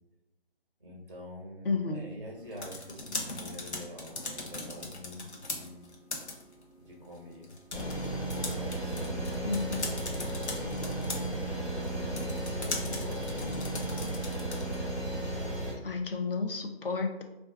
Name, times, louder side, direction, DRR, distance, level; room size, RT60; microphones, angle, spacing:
voice 1, 0.8-5.9 6.8-7.5 8.2-9.8 10.8-13.9, left 1 dB, 30° right, -2 dB, 0.4 m, -46 dB
voice 2, 1.6-2.1 9.5-9.8 15.8-17.2, left 4 dB, 55° left, 4 dB, 0.5 m, -31 dB
sound 1, 2.4-14.9, left 2 dB, 85° left, 0.8 m, -41 dB
sound 2, 7.7-15.7, right 1 dB, 30° left, 1.0 m, -34 dB
2.4 x 2.2 x 3.5 m, 0.97 s
figure-of-eight pair, 165°, 33 cm